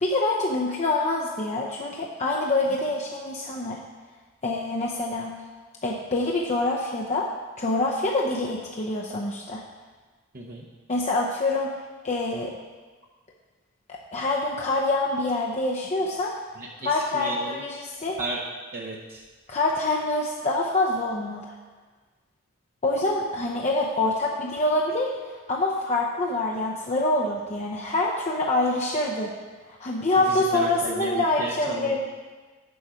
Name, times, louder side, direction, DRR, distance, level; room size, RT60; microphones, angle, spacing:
voice 1, 0.0-3.8 4.4-5.3 5.8-9.6 10.9-11.8 12.0-12.6 13.9-16.3 16.8-18.2 19.5-21.6 22.8-29.3 29.7-32.0, left 2 dB, 35° left, -2 dB, 0.7 m, -26 dB
voice 2, 10.3-10.7 16.6-17.6 18.2-18.4 18.7-19.2 30.2-32.0, right 2 dB, 45° right, -4 dB, 0.8 m, -34 dB
7.2 x 7.0 x 5.0 m, 1.3 s
head